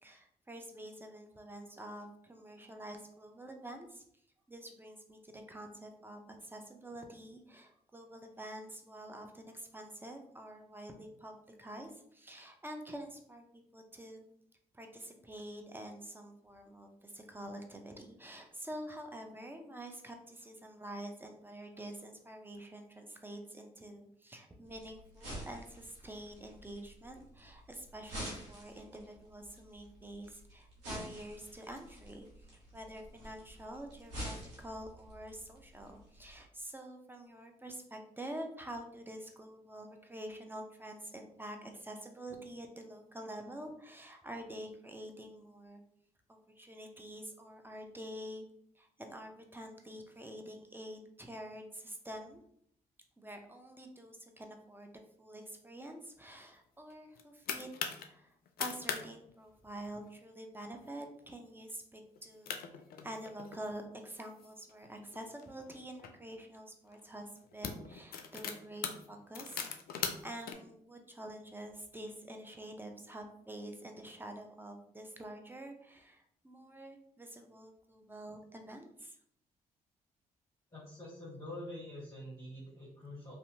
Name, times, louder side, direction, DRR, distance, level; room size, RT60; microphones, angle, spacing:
voice 1, 0.0-4.0 4.5-14.3 14.7-32.3 32.7-45.8 46.3-48.5 48.8-52.4 53.2-54.9 55.2-57.7 58.0-62.6 63.0-69.7 70.0-79.2, right 1 dB, 10° right, 4 dB, 0.5 m, -47 dB
sound 1, 24.6-36.4, equal, 90° right, 0.8 m, -48 dB
sound 2, 56.9-58.1 58.5-59.0 59.3-59.4 59.7-60.1 60.6-60.9 61.3-61.4 62.2-62.3 62.5-63.6 64.2-66.1 66.9-67.1 67.4-70.5, left 7 dB, 65° left, 0.4 m, -40 dB
voice 2, 80.7-83.4, left 1 dB, 15° left, -7 dB, 1.1 m, -46 dB
2.7 x 2.2 x 2.7 m, 0.69 s
hypercardioid pair, 45°, 17 cm